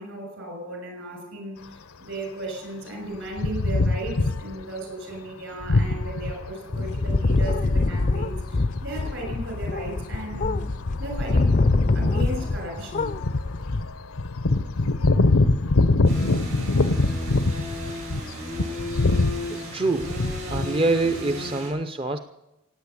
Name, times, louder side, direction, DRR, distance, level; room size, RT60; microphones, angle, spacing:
voice 1, 0.0-1.6 2.0-10.7 11.0-11.6 11.9-13.1, right 1 dB, 65° right, 3 dB, 6.4 m, -35 dB
sound 1, 3.3-4.6 5.6-7.2 7.9-8.1 8.6-18.2 18.5-19.4 20.0-20.7, left 2 dB, 80° left, 0.8 m, -24 dB
sound 2, 6.7-12.7 12.9-13.8, left 3 dB, 40° left, 0.5 m, -24 dB
sound 3, 16.0-21.7, left 1 dB, 90° right, 7.8 m, -34 dB
voice 2, 19.5-20.1 20.5-22.2, right 2 dB, 25° right, 9 dB, 0.6 m, -25 dB
16.5 x 9.1 x 8.4 m, 0.94 s
head